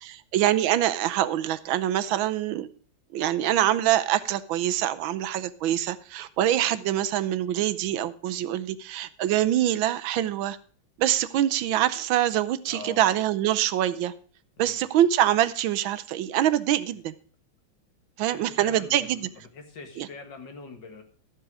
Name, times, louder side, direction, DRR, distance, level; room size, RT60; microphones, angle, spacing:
voice 1, 0.0-2.7 3.1-10.6 11.0-14.1 14.6-17.1 18.2-19.3 20.0-20.1, right 12 dB, 75° right, 14 dB, 1.4 m, -25 dB
voice 2, 12.7-13.0 14.6-14.8 18.3-19.2 19.5-21.0, left 4 dB, 60° left, 6 dB, 2.3 m, -43 dB
13.0 x 7.5 x 4.8 m, 0.43 s
omnidirectional pair, 2.3 m